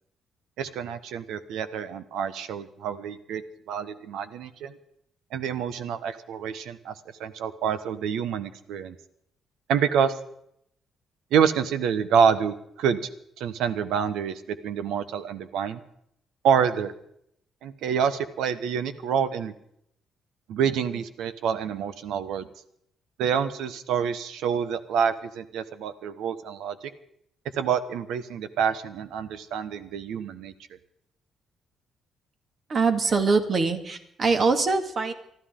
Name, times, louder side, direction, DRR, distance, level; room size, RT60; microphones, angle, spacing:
voice 1, 0.6-3.4 3.7-4.7 5.3-6.9 7.2-8.9 9.7-10.2 11.3-13.0 13.4-15.8 16.4-16.9 17.6-19.5 20.5-22.5 23.2-26.9 27.6-30.5, right 7 dB, 85° right, 12 dB, 1.1 m, -27 dB
voice 2, 32.7-35.1, right 4 dB, 50° right, 6 dB, 2.2 m, -23 dB
24.5 x 13.5 x 3.8 m, 0.73 s
cardioid pair, 90°, 0 cm